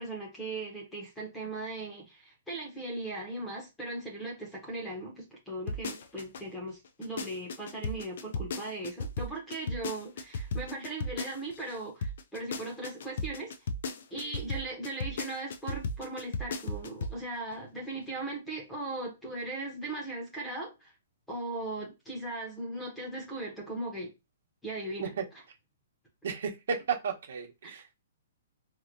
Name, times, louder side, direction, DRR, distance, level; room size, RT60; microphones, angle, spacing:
voice 1, 0.0-13.5 14.1-20.9 21.3-24.1 24.6-25.1, right 2 dB, 5° left, 0.8 m, -38 dB
sound 1, 5.7-6.4 6.8-11.8 12.0-17.2 17.5-17.6, left 2 dB, 50° left, 0.4 m, -35 dB
voice 2, 26.2-27.9, right 6 dB, 55° right, 0.9 m, -33 dB
3.0 x 2.8 x 2.6 m
hypercardioid pair, 180°, 0 cm